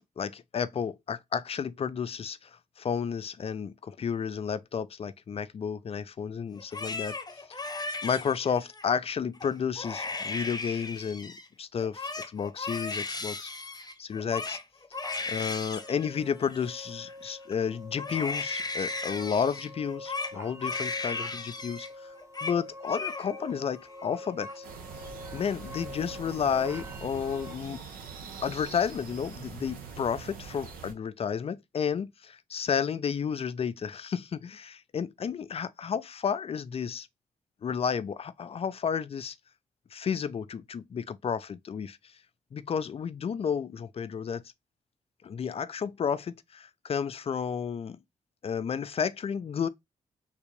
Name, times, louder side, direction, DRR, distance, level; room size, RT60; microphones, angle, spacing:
voice 1, 0.0-2.5 2.8-7.2 7.5-7.7 8.0-13.5 14.0-14.6 15.3-22.1 22.4-24.6 25.3-27.8 28.4-37.1 37.6-39.3 39.9-42.0 42.5-44.4 45.2-48.0 48.4-49.7, left 7 dB, 40° left, 0.4 m, -32 dB
Crying sobbing, 6.6-8.9 9.4-9.5 9.8-11.5 11.8-17.5 18.0-21.9 22.2-22.6 22.8-23.6 23.9-24.5, left 3 dB, 25° left, 0.8 m, -36 dB
sound 1, 14.9-27.6, left 1 dB, 20° right, 0.8 m, -45 dB
sound 2, 24.6-30.9, right 6 dB, 75° right, 0.8 m, -43 dB
3.5 x 2.5 x 3.0 m
hypercardioid pair, 40°, 15 cm